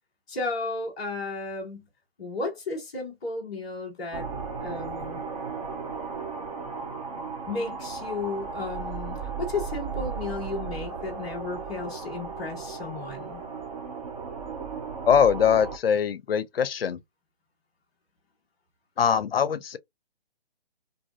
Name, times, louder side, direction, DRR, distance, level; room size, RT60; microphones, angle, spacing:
voice 1, 0.3-1.8 2.2-4.3 4.6-5.2 7.5-13.4, left 3 dB, 5° left, 0.4 m, -34 dB
sound 1, 4.1-15.8, right 5 dB, 35° right, 0.7 m, -35 dB
voice 2, 15.1-17.0 19.0-19.8, left 7 dB, 70° left, 0.4 m, -22 dB
2.5 x 2.4 x 2.3 m
figure-of-eight pair, 140°, 31 cm